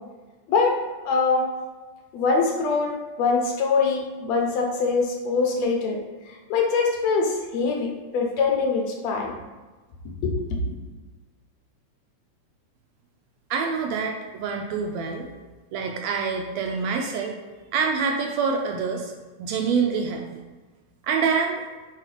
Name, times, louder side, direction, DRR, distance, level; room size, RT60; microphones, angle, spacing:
voice 1, 1.1-1.5 2.1-6.0 6.5-9.3 10.2-10.6, left 4 dB, 70° left, 1 dB, 1.9 m, -23 dB
voice 2, 13.5-15.3 15.7-17.4 17.7-19.1 19.4-20.3 21.0-21.6, right 5 dB, 80° right, 3 dB, 1.6 m, -26 dB
4.6 x 4.6 x 4.8 m, 1.3 s
omnidirectional pair, 3.5 m